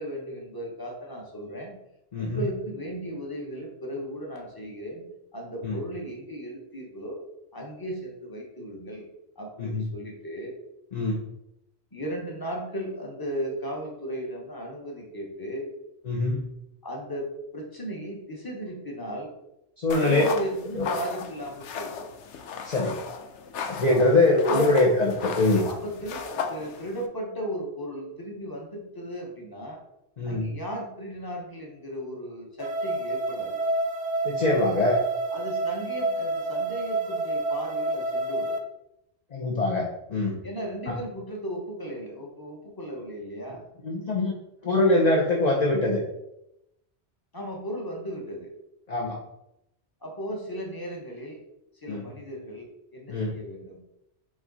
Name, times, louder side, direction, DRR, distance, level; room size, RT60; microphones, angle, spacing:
voice 1, 0.0-1.7 2.2-7.2 7.5-9.1 9.3-10.5 11.9-15.7 16.8-19.3 19.9-22.0 24.5-24.7 25.7-29.8 30.2-33.6 35.3-38.5 40.4-43.6 47.3-48.5 50.0-51.4 51.8-53.8, equal, 20° left, 0 dB, 1.3 m, -36 dB
voice 2, 10.9-11.2 16.1-16.5 19.8-20.2 20.8-20.9 22.6-23.0 23.7-25.7 30.2-30.5 34.2-35.0 39.3-40.4 40.9-41.0 43.8-44.3 44.6-46.0 48.9-49.2 51.9-52.1 53.1-53.4, left 2 dB, 40° left, -1 dB, 1.0 m, -23 dB
sound 1, 19.9-27.1, left 6 dB, 85° left, 1.0 m, -35 dB
sound 2, 32.6-38.6, right 2 dB, 40° right, 0.7 m, -28 dB
7.8 x 3.7 x 4.1 m, 0.85 s
omnidirectional pair, 1.2 m